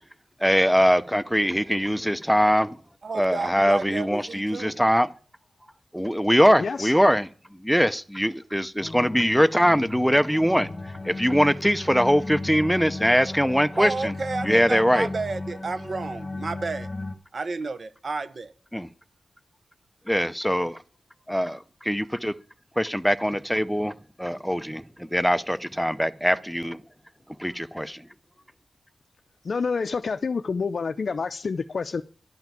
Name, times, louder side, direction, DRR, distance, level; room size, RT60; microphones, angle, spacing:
voice 1, 0.4-2.8 3.1-5.1 5.9-7.3 7.6-10.7 11.0-14.1 14.4-15.1 18.7-18.9 20.1-20.8 21.3-22.3 22.8-26.8 27.4-28.1, equal, ahead, 0.6 m, -22 dB
voice 2, 3.0-4.8 13.8-16.9 17.3-18.5, right 4 dB, 50° right, 1.0 m, -31 dB
voice 3, 6.6-6.9 29.4-32.0, left 5 dB, 55° left, 0.5 m, -28 dB
sound 1, 8.8-17.2, left 2 dB, 30° left, 1.3 m, -36 dB
11.5 x 5.8 x 9.1 m
wide cardioid pair, 115°, 0 cm